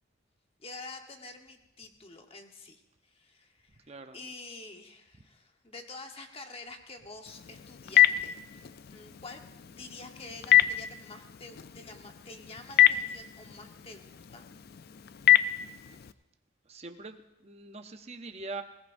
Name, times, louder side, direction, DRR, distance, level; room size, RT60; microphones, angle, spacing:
voice 1, 0.6-8.6 8.9-9.4 9.7-14.5, left 3 dB, 30° left, 4 dB, 1.1 m, -47 dB
voice 2, 3.9-4.2 16.7-18.6, right 3 dB, 30° right, 7 dB, 0.7 m, -43 dB
Telephone, 7.3-16.1, left 13 dB, 50° left, 0.4 m, -27 dB
20.0 x 17.5 x 2.6 m, 0.88 s
head